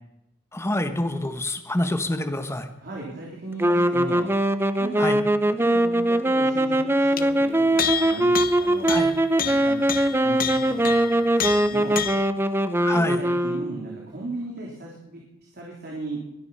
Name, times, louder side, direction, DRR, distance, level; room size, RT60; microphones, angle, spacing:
voice 1, 0.5-2.7 5.0-5.2 8.9-9.1 12.8-13.2, left 1 dB, 15° left, 7 dB, 1.4 m, -26 dB
voice 2, 2.8-4.3 4.8-5.2 5.4-9.0 9.4-12.0 12.9-16.2, right 2 dB, 55° right, -3 dB, 3.6 m, -37 dB
sound 1, 3.6-14.0, right 1 dB, 10° right, 0.6 m, -22 dB
sound 2, 7.2-7.3 7.8-12.3, left 9 dB, 45° left, 0.9 m, -29 dB
22.0 x 11.0 x 5.7 m, 0.89 s
head